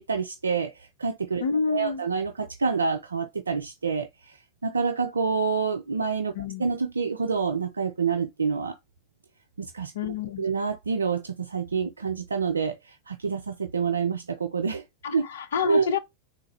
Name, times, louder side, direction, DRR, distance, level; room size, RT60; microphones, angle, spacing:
voice 1, 0.0-4.4 4.6-6.3 6.6-8.8 9.6-9.9 10.4-14.8 15.1-15.3 15.7-15.9, right 5 dB, 75° right, 0.4 m, -27 dB
voice 2, 1.4-2.0 6.4-6.7 9.9-10.5 15.0-16.0, left 5 dB, 60° left, 0.5 m, -28 dB
3.6 x 2.2 x 3.1 m
figure-of-eight pair, 90°, 0 cm